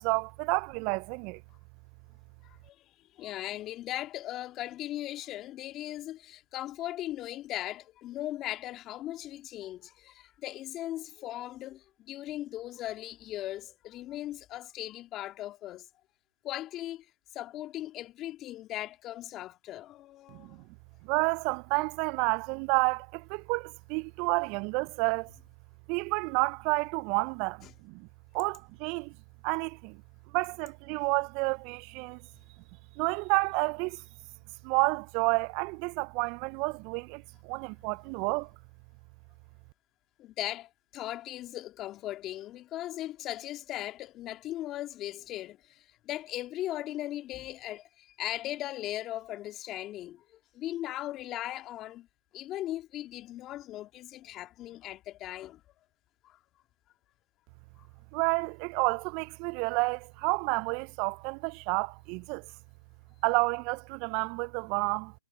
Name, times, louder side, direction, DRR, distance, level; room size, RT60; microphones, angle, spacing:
voice 1, 0.0-1.4 20.3-20.6 21.0-25.3 25.9-28.1 28.3-29.1 29.4-30.0 30.3-32.2 33.0-34.0 34.6-38.5 58.1-62.5 63.2-65.1, right 31 dB, 35° right, 0.4 m, -30 dB
voice 2, 2.4-15.9 16.4-17.1 17.3-20.6 27.6-27.7 40.2-52.1 52.3-55.6 56.2-56.4 57.8-57.9, left 14 dB, 25° left, 2.2 m, -38 dB
hypercardioid pair, 125°, 0 cm